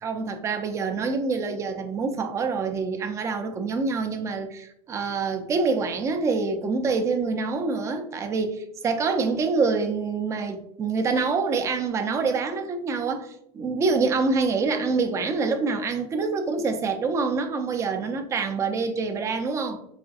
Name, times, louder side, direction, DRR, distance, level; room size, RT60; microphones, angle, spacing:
voice 1, 0.0-19.8, right 4 dB, 20° right, 0.4 m, -26 dB
4.8 x 2.6 x 2.4 m
supercardioid pair, 155°, 16 cm